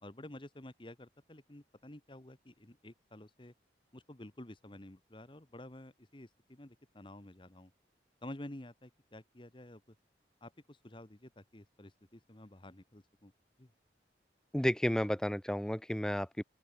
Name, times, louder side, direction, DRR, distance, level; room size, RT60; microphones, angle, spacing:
voice 1, 0.0-3.5 3.9-7.7 8.2-9.9 10.4-13.3 13.6-13.7, left 1 dB, 30° left, 1.4 m, -51 dB
voice 2, 14.5-16.4, equal, 5° left, 0.6 m, -32 dB
open air
head